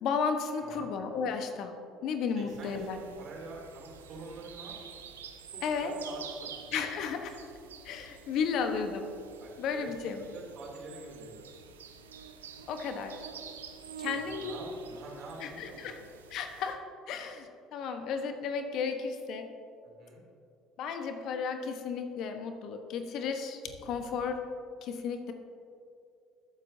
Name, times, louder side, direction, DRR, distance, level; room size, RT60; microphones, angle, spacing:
voice 1, 0.0-1.8 2.0-3.0 5.6-5.9 6.7-7.4 7.8-9.1 9.6-10.2 12.7-13.2 14.0-14.5 15.4-15.9 16.3-19.5 20.8-24.5 24.8-25.3, left 6 dB, 60° left, 6 dB, 1.0 m, -34 dB
voice 2, 2.3-4.8 5.5-6.8 9.4-9.9 10.3-11.6 14.0-16.1 19.8-20.2 23.8-24.1, right 3 dB, 50° right, -1 dB, 2.8 m, -46 dB
sound 1, 2.5-16.7, right 7 dB, 85° right, 0.7 m, -48 dB
21.0 x 7.4 x 2.7 m, 2.4 s
hypercardioid pair, 60°, 0 cm